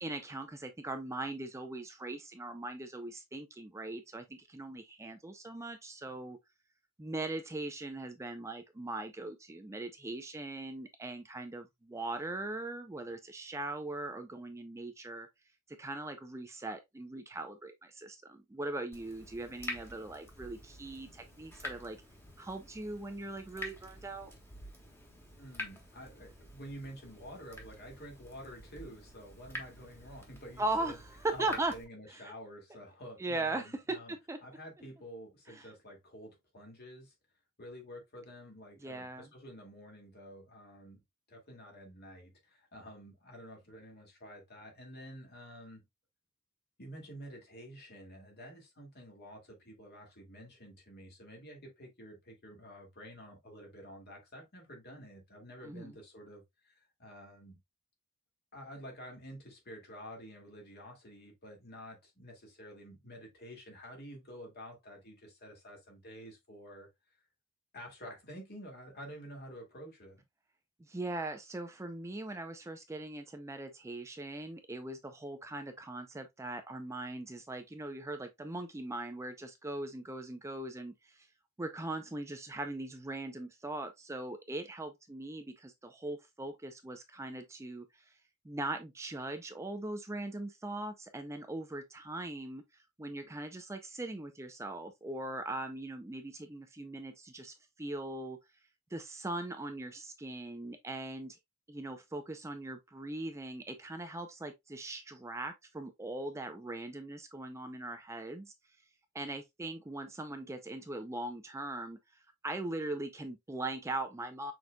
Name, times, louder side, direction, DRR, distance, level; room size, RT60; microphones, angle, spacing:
voice 1, 0.0-6.4 7.0-15.3 15.8-22.0 22.4-24.3 30.6-31.7 32.1-32.2 33.2-34.4 35.6-35.7 38.8-39.3 55.6-55.9 70.8-81.3 81.6-88.1 88.4-92.6 93.0-98.4 98.9-101.4 101.7-108.5 109.1-112.0 112.4-114.5, right 2 dB, 15° right, 0.4 m, -40 dB
Water tap faucet / Drip, 18.9-31.8, left 1 dB, 10° left, 1.4 m, -48 dB
voice 2, 25.4-31.0 31.3-34.1 34.4-37.1 37.6-41.0 41.3-45.8 46.8-57.6 58.5-67.2 67.7-70.2, equal, 50° left, 2.1 m, -49 dB
6.1 x 3.9 x 2.2 m
head